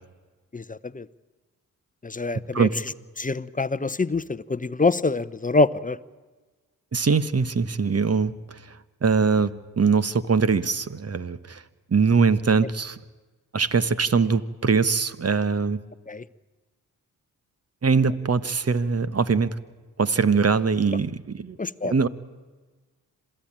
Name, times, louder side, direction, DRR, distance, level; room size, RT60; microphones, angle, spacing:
voice 1, 0.5-1.1 2.0-2.7 3.2-6.0 16.1-16.2 21.6-21.9, left 3 dB, 20° left, 16 dB, 0.8 m, -25 dB
voice 2, 6.9-11.6 11.9-13.0 13.5-15.8 17.8-19.5 20.0-21.6 21.8-22.1, right 5 dB, 35° right, 15 dB, 1.3 m, -22 dB
26.5 x 16.0 x 8.9 m, 1.3 s
supercardioid pair, 45°, 40 cm